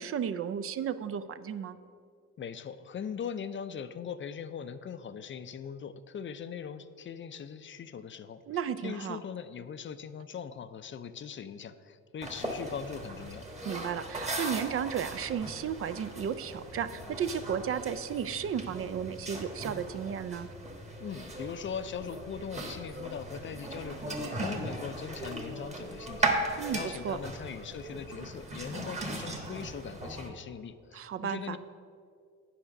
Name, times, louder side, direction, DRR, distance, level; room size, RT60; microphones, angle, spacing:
voice 1, 0.0-1.8 8.5-9.2 13.6-20.5 26.6-27.2 30.9-31.6, right 8 dB, 50° right, 13 dB, 0.4 m, -34 dB
voice 2, 2.4-13.5 21.0-31.6, left 7 dB, 40° left, 12 dB, 0.4 m, -40 dB
sound 1, 12.2-30.3, right 2 dB, 20° right, 1.3 m, -38 dB
8.7 x 4.9 x 6.4 m, 2.2 s
cardioid pair, 90°, 30 cm